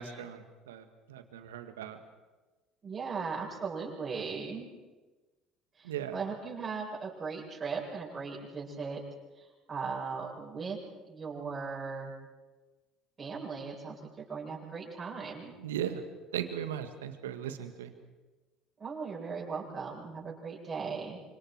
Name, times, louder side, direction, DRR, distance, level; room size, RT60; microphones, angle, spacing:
voice 1, 0.0-2.0 5.8-6.2 15.6-16.0 16.3-17.9, right 10 dB, 80° right, 8 dB, 1.9 m, -38 dB
voice 2, 2.8-4.7 5.8-9.0 9.4-10.8 11.1-12.1 13.2-14.0 14.3-15.5 18.8-21.2, right 5 dB, 35° right, -4 dB, 8.0 m, -38 dB
29.0 x 26.0 x 4.8 m, 1.2 s
hypercardioid pair, 65°, 0 cm